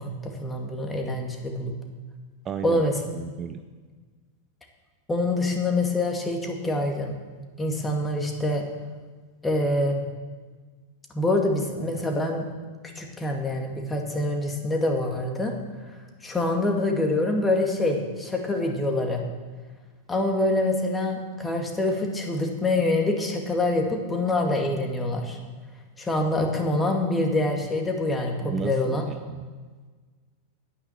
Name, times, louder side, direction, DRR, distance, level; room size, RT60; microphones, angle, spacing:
voice 1, 0.0-1.7 2.6-2.9 5.1-7.2 7.6-8.7 9.4-10.0 11.1-12.5 13.0-15.6 16.2-19.2 20.1-25.4 26.0-29.0, left 2 dB, 15° left, 2 dB, 2.2 m, -25 dB
voice 2, 2.4-2.8 3.1-3.6 28.4-29.4, right 7 dB, 25° right, 8 dB, 0.6 m, -34 dB
10.0 x 9.6 x 7.2 m, 1.4 s
figure-of-eight pair, 90°, 0 cm